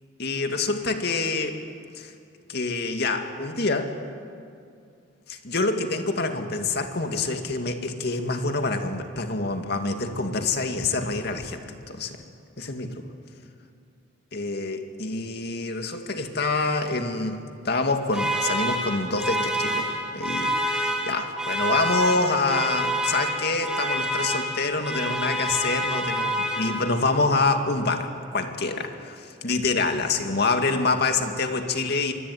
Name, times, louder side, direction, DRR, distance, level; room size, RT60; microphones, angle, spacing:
voice 1, 0.2-1.6 2.0-2.1 2.5-3.9 5.3-12.2 12.6-13.0 14.3-19.9 20.1-32.1, left 3 dB, 55° left, 5 dB, 2.2 m, -26 dB
sound 1, 18.1-27.1, equal, 5° right, 3.3 m, -28 dB
25.0 x 22.5 x 9.6 m, 2.4 s
head